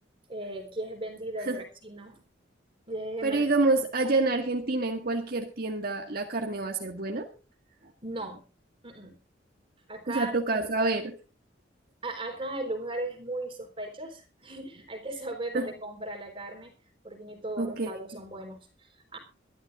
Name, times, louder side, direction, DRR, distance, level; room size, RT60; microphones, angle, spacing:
voice 1, 0.3-2.2 2.9-3.4 8.0-8.4 8.8-9.2 9.9-10.3 12.0-16.7 17.0-19.2, right 2 dB, 30° right, 3 dB, 4.0 m, -37 dB
voice 2, 3.2-7.3 10.1-11.1 15.5-15.7 17.6-17.9, right 2 dB, 55° right, 2 dB, 1.8 m, -27 dB
25.0 x 12.5 x 2.5 m, 0.34 s
head